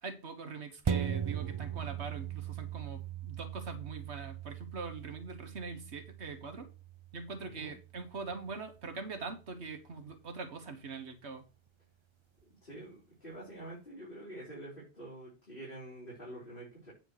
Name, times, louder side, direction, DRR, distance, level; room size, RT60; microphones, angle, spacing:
voice 1, 0.0-6.7 7.1-11.4, right 4 dB, 85° right, 1.7 m, -43 dB
sound 1, 0.8-9.7 10.1-10.2, right 8 dB, 45° right, 0.4 m, -40 dB
voice 2, 7.4-7.7 12.6-16.9, right 1 dB, 50° left, 4.5 m, -47 dB
9.2 x 4.4 x 6.6 m
omnidirectional pair, 1.1 m